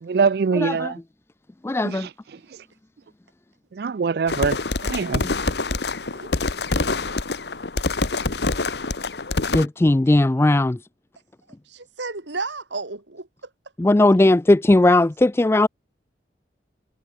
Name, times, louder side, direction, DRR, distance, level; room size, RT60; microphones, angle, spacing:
voice 1, 0.0-1.0 1.8-2.0 3.7-4.6 4.8-5.2, right 5 dB, 60° right, 0.4 m, -23 dB
voice 2, 0.5-0.9 1.6-2.1 5.2-5.3 9.5-10.8 13.8-15.7, left 2 dB, 15° left, 0.3 m, -17 dB
sound 1, 4.3-9.7, left 3 dB, 70° left, 1.4 m, -25 dB
voice 3, 11.7-13.3, right 3 dB, 90° right, 2.5 m, -33 dB
head